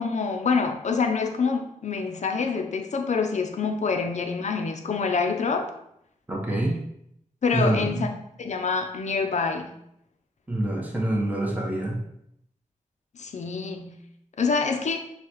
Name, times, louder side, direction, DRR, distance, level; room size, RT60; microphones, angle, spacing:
voice 1, 0.0-5.7 7.4-9.7 13.1-14.0 14.4-15.0, left 5 dB, 65° left, 5 dB, 0.6 m, -26 dB
voice 2, 6.3-6.8 7.5-8.1 10.5-12.0, right 1 dB, 10° right, -2 dB, 1.0 m, -26 dB
6.4 x 2.3 x 3.0 m, 0.76 s
wide cardioid pair, 75°, 13 cm